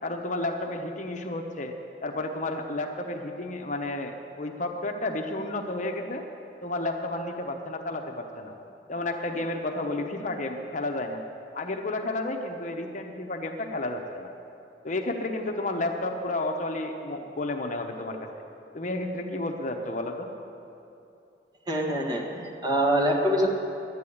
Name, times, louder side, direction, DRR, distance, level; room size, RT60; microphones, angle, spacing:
voice 1, 0.0-1.8 2.0-6.2 6.6-8.5 8.9-11.2 11.5-14.3 14.8-18.3 18.7-20.3, left 2 dB, 45° left, 4 dB, 0.9 m, -31 dB
voice 2, 21.7-23.5, equal, 25° right, -1 dB, 1.6 m, -25 dB
11.5 x 9.4 x 8.5 m, 2.7 s
head